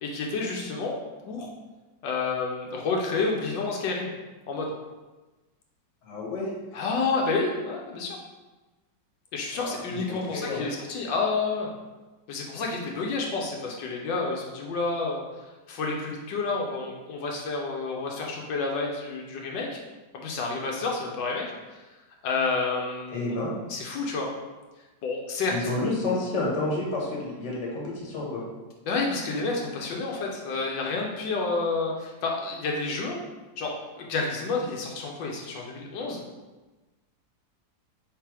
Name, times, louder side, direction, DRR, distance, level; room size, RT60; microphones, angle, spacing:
voice 1, 0.0-1.0 1.3-1.5 2.0-4.1 4.5-4.7 6.7-8.2 9.3-11.7 12.3-15.2 15.7-19.8 20.1-21.5 22.2-23.4 23.7-24.3 25.0-25.5 28.9-33.2 33.6-36.2, left 3 dB, 85° left, 0 dB, 1.3 m, -29 dB
voice 2, 6.0-6.5 9.5-10.7 23.1-23.5 25.5-28.5, left 2 dB, 45° left, -3 dB, 1.2 m, -30 dB
3.4 x 3.2 x 4.6 m, 1.2 s
omnidirectional pair, 2.0 m